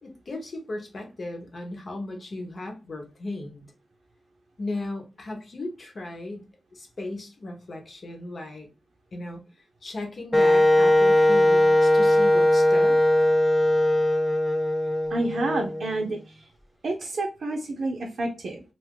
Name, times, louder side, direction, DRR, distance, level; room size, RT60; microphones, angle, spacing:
voice 1, 0.0-3.7 4.6-6.5 6.7-8.7 9.1-9.4 9.8-13.0, left 2 dB, 55° left, 2 dB, 1.0 m, -36 dB
Wind instrument woodwind instrument, 10.3-16.2, left 1 dB, 20° left, 0.7 m, -20 dB
voice 2, 15.1-16.5 16.8-18.6, right 2 dB, 65° right, 0 dB, 0.6 m, -29 dB
2.5 x 2.2 x 3.6 m, 0.30 s
supercardioid pair, 45°, 0 cm